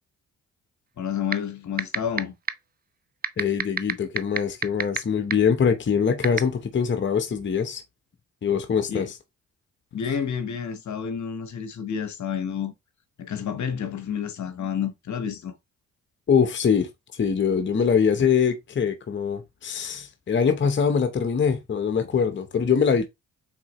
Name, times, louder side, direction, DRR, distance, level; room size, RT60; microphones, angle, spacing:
voice 1, 1.0-2.3 8.9-9.1 9.9-12.7 13.2-15.5, left 7 dB, 55° left, 1.0 m, -30 dB
sound 1, 1.3-1.4 1.8-2.2 2.5-2.6 3.2-5.0 5.3-5.4 6.2-6.4, right 7 dB, 30° right, 0.4 m, -22 dB
voice 2, 3.4-7.8 8.4-9.1 16.3-23.1, left 6 dB, 35° left, 0.8 m, -23 dB
4.6 x 3.7 x 3.0 m
supercardioid pair, 55°, 34 cm